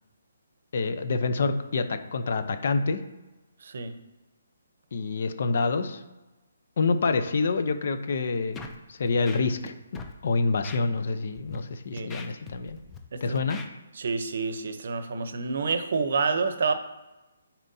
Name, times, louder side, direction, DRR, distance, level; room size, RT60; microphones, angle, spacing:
voice 1, 0.7-3.0 4.9-6.0 6.8-8.6 8.9-9.7 10.2-12.8 13.2-13.6, left 4 dB, 55° left, 9 dB, 0.6 m, -27 dB
voice 2, 3.6-3.9 11.9-12.2 13.1-13.4 13.9-16.7, right 4 dB, 60° right, 9 dB, 0.7 m, -28 dB
Scratching (performance technique), 8.5-8.8 9.1-9.7 9.9-10.1 10.6-10.8 11.3-11.6 12.0-13.0 13.4-13.7, left 5 dB, 10° left, 0.5 m, -41 dB
9.1 x 4.3 x 2.7 m, 1.1 s
hypercardioid pair, 165°, 0 cm